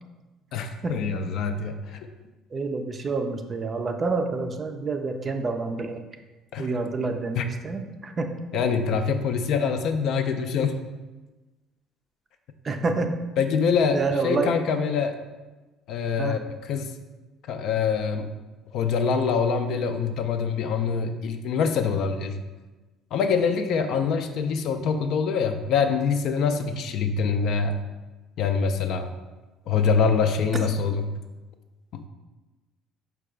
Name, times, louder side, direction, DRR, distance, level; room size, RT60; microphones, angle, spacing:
voice 1, 0.5-2.0 6.5-6.7 7.4-7.5 8.5-10.7 13.4-15.1 15.9-16.9 17.5-18.3 18.7-22.4 23.1-27.8 28.4-29.1 29.7-31.1 31.9-32.0, left 5 dB, 65° left, 7 dB, 0.4 m, -25 dB
voice 2, 2.5-6.0 6.6-8.6 12.6-13.2 13.9-14.6 16.2-16.4, right 3 dB, 30° right, 6 dB, 0.4 m, -28 dB
4.6 x 2.3 x 4.8 m, 1.2 s
cardioid pair, 110°, 0 cm